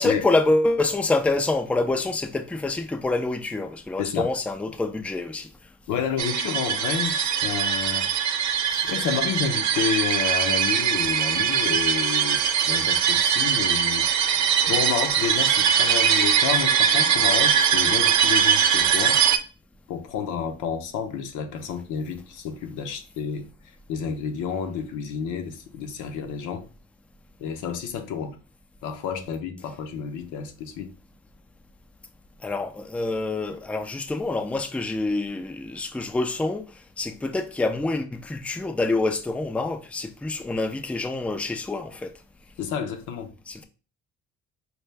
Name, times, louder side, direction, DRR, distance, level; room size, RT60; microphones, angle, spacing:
voice 1, 0.0-5.5 5.9-6.0 8.8-8.9 32.4-42.1 43.5-43.6, left 2 dB, 5° left, 0.4 m, -26 dB
voice 2, 4.0-4.3 5.9-8.1 8.8-14.1 14.7-19.2 19.9-23.5 23.9-26.7 27.4-28.4 28.8-30.9 42.6-43.3, left 7 dB, 90° left, 0.8 m, -30 dB
sound 1, 6.2-19.4, right 8 dB, 70° right, 0.6 m, -21 dB
4.3 x 2.2 x 3.3 m
cardioid pair, 90°, 30 cm